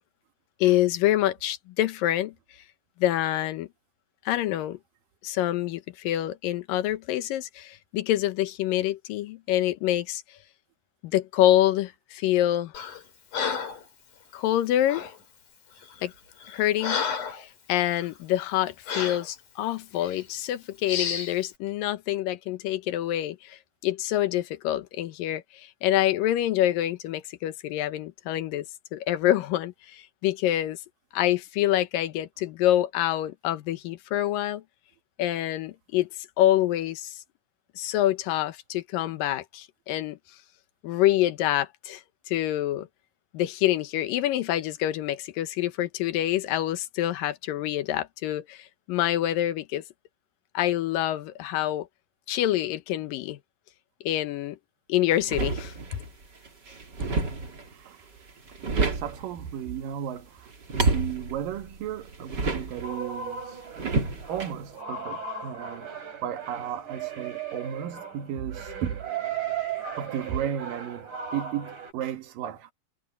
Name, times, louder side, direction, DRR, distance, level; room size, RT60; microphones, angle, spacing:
voice 1, 0.6-2.3 3.0-3.7 4.3-4.8 5.2-10.2 11.0-12.7 14.3-15.1 16.0-16.1 16.5-28.7 28.9-30.8 31.1-34.6 35.2-37.2 37.8-40.2 40.8-42.9 43.3-49.8 50.5-51.9 52.3-53.4 54.0-54.6 54.9-56.0, left 13 dB, 85° left, 2.7 m, -26 dB
Breathing, 12.7-13.0 13.3-13.8 14.9-15.2 15.8-16.0 16.4-17.5 17.9-18.1 18.9-19.3 20.0-20.2 20.9-21.4, left 6 dB, 65° left, 5.4 m, -31 dB
sound 1, 55.1-56.1 56.5-57.7 58.3-59.3 60.5-62.9 63.8-64.5, right 3 dB, 30° right, 3.1 m, -29 dB
voice 2, 57.7-58.1 58.8-63.6 64.3-65.9 66.2-69.1 70.0-72.7, right 9 dB, 85° right, 3.2 m, -34 dB
sound 2, 62.8-71.9, right 7 dB, 60° right, 7.1 m, -36 dB
omnidirectional pair, 3.8 m